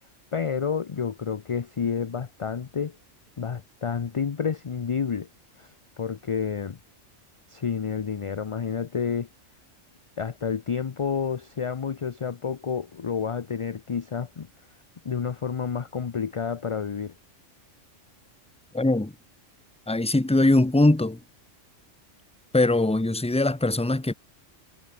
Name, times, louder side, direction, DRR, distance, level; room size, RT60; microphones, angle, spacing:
voice 1, 0.3-3.0 3.4-5.3 5.6-6.8 7.5-9.3 10.2-14.5 15.0-17.1, left 6 dB, 40° left, 0.5 m, -29 dB
voice 2, 18.7-19.1 19.9-21.2 22.5-24.1, left 2 dB, 5° left, 0.8 m, -21 dB
omnidirectional pair, 1.3 m